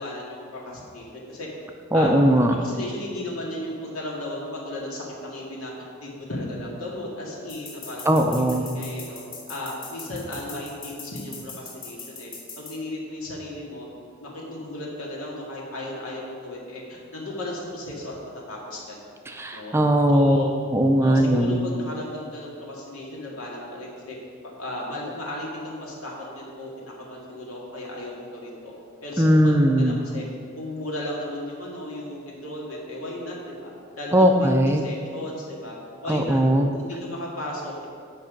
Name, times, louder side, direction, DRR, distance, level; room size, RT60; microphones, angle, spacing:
voice 1, 0.0-1.5 1.9-2.1 2.6-5.7 6.0-9.2 9.5-13.9 14.2-18.1 18.5-19.0 19.5-19.8 20.1-20.5 21.0-24.2 24.6-28.7 29.0-30.2 30.6-35.7 36.0-36.4 36.7-37.9, left 1 dB, 90° left, -4 dB, 2.0 m, -35 dB
voice 2, 1.9-2.5 8.1-8.6 19.3-20.4 20.7-21.6 29.2-30.0 34.1-34.8 36.1-36.7, equal, 10° right, 4 dB, 0.4 m, -19 dB
sound 1, 7.5-12.7, left 4 dB, 45° left, 2.2 m, -40 dB
8.7 x 5.5 x 5.2 m, 2.2 s
head